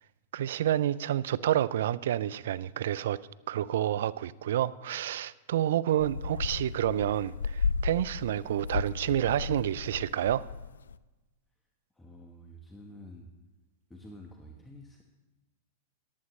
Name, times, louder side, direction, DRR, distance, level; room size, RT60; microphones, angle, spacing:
voice 1, 0.3-3.2 3.5-10.5, right 11 dB, 70° right, 0.3 m, -29 dB
sound 1, 6.0-10.9, left 5 dB, 85° left, 0.3 m, -34 dB
voice 2, 11.9-13.3 13.9-15.0, equal, 10° left, 1.2 m, -49 dB
14.5 x 11.0 x 3.2 m
hypercardioid pair, 105°, 0 cm